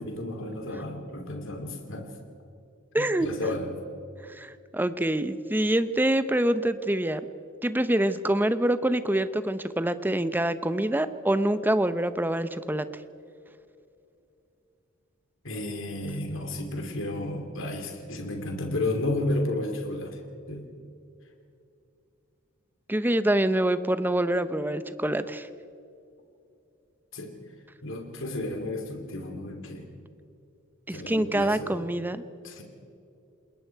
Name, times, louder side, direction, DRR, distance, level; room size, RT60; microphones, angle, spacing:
voice 1, 0.0-2.1 3.0-3.7 15.4-20.2 20.5-20.7 27.1-27.3 27.8-29.9 30.9-31.8 32.4-32.6, left 1 dB, 65° left, 3 dB, 2.9 m, -32 dB
voice 2, 2.9-3.3 4.3-7.2 7.6-12.9 22.9-25.5 30.9-32.2, right 1 dB, 10° right, 12 dB, 0.7 m, -25 dB
28.0 x 21.0 x 4.7 m, 2.6 s
head